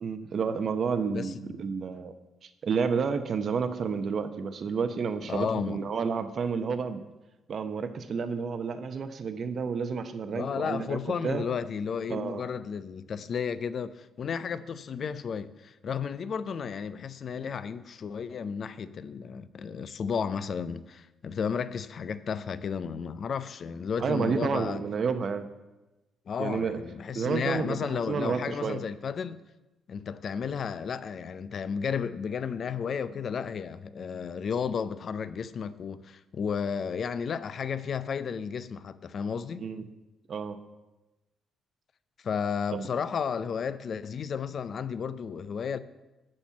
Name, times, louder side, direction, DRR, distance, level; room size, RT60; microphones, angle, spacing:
voice 1, 0.0-2.1 2.4-7.0 7.5-11.5 12.1-12.5 24.0-25.5 26.4-26.8 27.1-28.8 39.6-39.8 40.3-40.6 42.7-42.9, right 5 dB, 40° right, 0.8 m, -30 dB
voice 2, 5.3-5.8 10.3-24.8 26.3-29.4 29.9-39.7 42.2-45.8, left 6 dB, 45° left, 0.5 m, -33 dB
13.0 x 4.3 x 8.4 m
cardioid pair, 155°, 0 cm